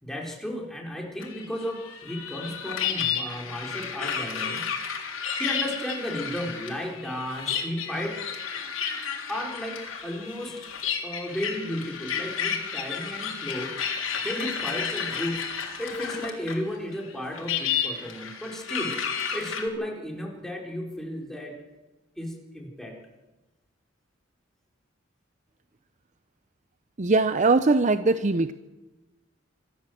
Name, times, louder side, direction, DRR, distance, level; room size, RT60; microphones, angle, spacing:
voice 1, 0.0-4.7 5.4-8.2 9.3-10.6 11.0-13.7 14.2-19.0 19.3-21.5 22.2-23.0, equal, ahead, -1 dB, 4.3 m, -34 dB
sound 1, 1.2-16.7 16.9-19.6, left 7 dB, 80° left, 3.6 m, -32 dB
voice 2, 27.0-28.5, right 3 dB, 40° right, 12 dB, 0.6 m, -21 dB
25.0 x 14.0 x 7.8 m, 1.1 s
head